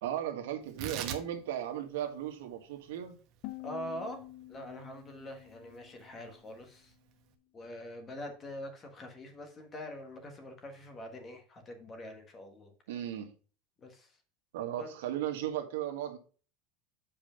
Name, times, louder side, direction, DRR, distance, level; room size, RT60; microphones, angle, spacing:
voice 1, 0.0-3.1 12.9-13.3 14.5-16.2, right 11 dB, 85° right, 1.7 m, -36 dB
Tearing, 0.6-7.3, right 9 dB, 40° right, 1.2 m, -46 dB
sound 1, 3.4-6.4, left 17 dB, 45° left, 0.8 m, -47 dB
voice 2, 3.6-4.2 4.5-6.9 7.5-12.7 13.8-14.2 14.8-14.9, equal, 20° left, 1.4 m, -44 dB
7.6 x 5.1 x 5.1 m
supercardioid pair, 170°, 0 cm